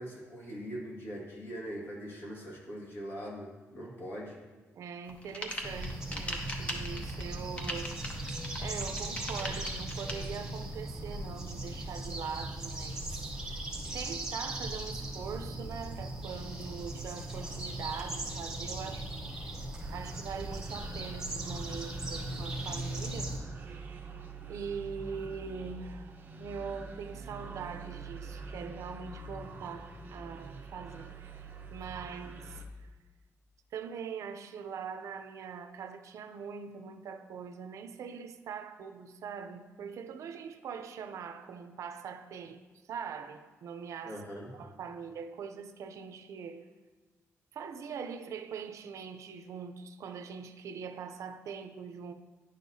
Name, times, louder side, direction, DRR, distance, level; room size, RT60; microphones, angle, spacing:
voice 1, 0.0-4.4 44.0-44.5, equal, 45° left, 1.7 m, -41 dB
voice 2, 4.7-8.0 8.3-13.2 13.5-13.6 13.9-19.5 19.9-23.4 23.7-24.0 24.5-32.9 33.7-42.6 42.9-44.2 44.5-46.7 47.5-52.1, right 6 dB, 70° right, 0.5 m, -42 dB
sound 1, 5.1-10.1, left 1 dB, 20° left, 0.8 m, -39 dB
sound 2, 5.6-23.4, right 1 dB, 10° right, 0.9 m, -38 dB
sound 3, 19.8-32.6, right 3 dB, 35° right, 0.7 m, -45 dB
10.5 x 6.5 x 2.7 m
wide cardioid pair, 170°, 5 cm